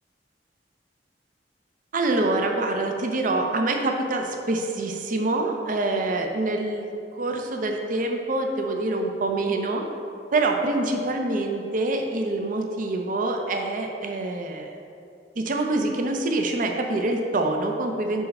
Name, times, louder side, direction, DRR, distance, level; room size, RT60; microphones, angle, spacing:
voice 1, 1.9-9.9 10.3-14.7 15.4-18.2, right 2 dB, 50° right, 3 dB, 0.5 m, -25 dB
4.7 x 4.2 x 5.3 m, 2.5 s
head